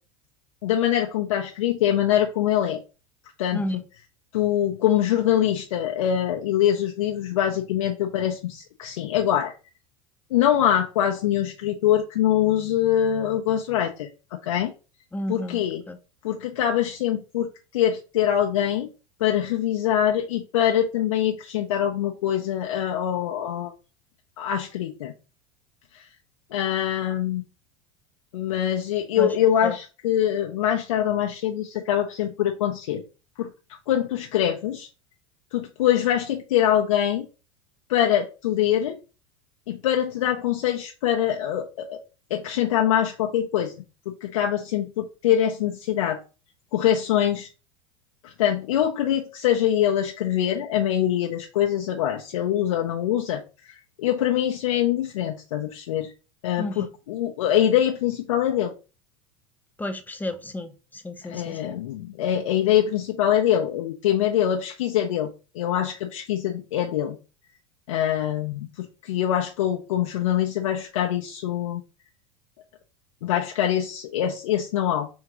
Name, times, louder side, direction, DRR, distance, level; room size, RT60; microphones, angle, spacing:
voice 1, 0.6-2.8 3.4-3.8 4.3-9.5 10.3-14.1 14.4-14.7 15.3-15.8 16.2-18.9 19.2-23.7 24.4-25.1 25.9-26.0 26.5-27.4 28.3-33.0 33.4-33.5 33.9-34.9 35.5-37.3 37.9-39.0 39.7-42.0 42.3-43.7 44.1-46.2 46.7-47.5 48.2-56.1 56.4-58.7 61.3-67.2 67.9-71.8 73.2-75.1, left 10 dB, 75° left, 0.6 m, -24 dB
voice 2, 15.1-16.0 29.2-29.3 29.6-29.7 56.6-56.9 59.8-61.7, left 1 dB, 10° left, 0.6 m, -32 dB
3.6 x 3.6 x 2.9 m
hypercardioid pair, 85°, 17 cm